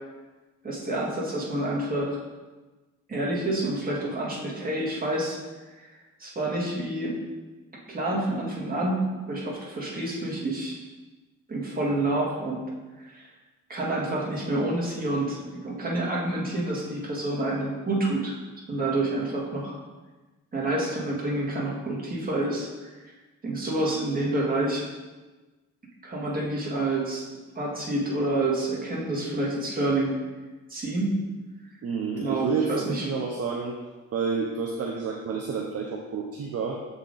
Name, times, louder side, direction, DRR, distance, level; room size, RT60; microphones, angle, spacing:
voice 1, 0.6-2.2 3.1-5.4 5.8-5.9 6.2-7.2 7.9-9.0 9.3-10.8 11.5-12.6 13.0-13.3 13.7-18.4 18.7-19.8 20.5-22.9 23.4-24.8 26.0-27.3 27.5-30.1 30.7-31.2 32.2-33.1, right 2 dB, 30° right, -5 dB, 2.1 m, -28 dB
voice 2, 31.8-33.8 34.1-36.8, right 5 dB, 55° right, 1 dB, 0.7 m, -29 dB
7.2 x 4.0 x 4.0 m, 1.2 s
cardioid pair, 90°, 30 cm